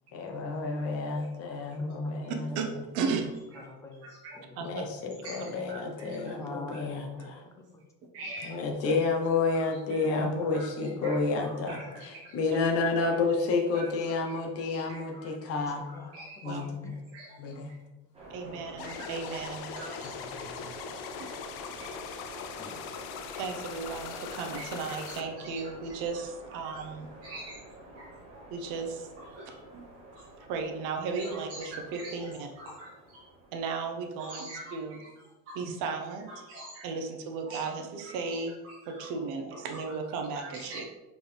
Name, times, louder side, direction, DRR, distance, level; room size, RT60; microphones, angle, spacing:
voice 1, 0.1-2.3 4.6-7.4 8.4-15.9 16.4-16.9 17.4-17.7 20.2-20.7 22.6-22.8, left 3 dB, 45° left, 2 dB, 1.1 m, -30 dB
voice 2, 1.8-2.7 3.5-4.6 6.3-7.8 8.2-8.4 9.9-10.5 10.9-11.9 15.2-16.2 16.6-17.0 18.5-18.9, left 2 dB, 10° left, 2 dB, 0.6 m, -47 dB
voice 3, 2.5-3.2 4.5-4.9 12.5-12.6 16.4-16.6 18.3-19.8 23.4-27.1 28.5-29.1 29.4-29.5 30.5-32.5 33.5-35.1 35.5-36.3 36.8-38.6 38.9-40.8, right 4 dB, 65° right, 4 dB, 1.0 m, -35 dB
voice 4, 5.7-6.3 8.1-8.6 9.5-11.2 11.7-12.0 13.7-13.8 14.2-14.3 14.9-15.3 16.1-16.4 17.1-17.6 18.8-19.0 19.7-20.1 21.2-21.3 23.3-23.4 24.5-24.6 25.4-25.5 27.2-27.6 27.9-28.1 29.3-29.8 30.1-30.2 31.2-32.1 32.8-32.9 34.2-34.7 35.5-35.6 36.5-36.8 37.5-37.6 38.0-38.1 38.9-39.0 40.3-40.8, right 2 dB, 45° right, -7 dB, 1.6 m, -44 dB
sound 1, 18.1-34.5, right 2 dB, 15° right, 1.6 m, -49 dB
sound 2, 18.8-25.2, left 7 dB, 65° left, 0.6 m, -41 dB
6.0 x 4.9 x 3.4 m, 1.1 s
cardioid pair, 165°, 33 cm